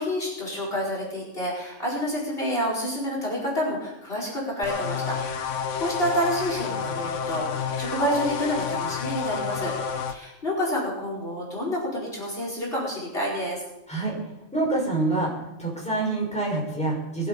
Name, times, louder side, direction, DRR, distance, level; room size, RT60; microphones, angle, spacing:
voice 1, 0.0-9.7 10.1-13.6, equal, 50° left, -4 dB, 5.0 m, -29 dB
sound 1, 4.6-10.1, left 6 dB, 75° left, 1.2 m, -30 dB
voice 2, 14.5-15.3 15.6-17.3, right 2 dB, 5° left, -4 dB, 5.6 m, -26 dB
21.0 x 8.4 x 6.9 m, 0.98 s
omnidirectional pair, 1.3 m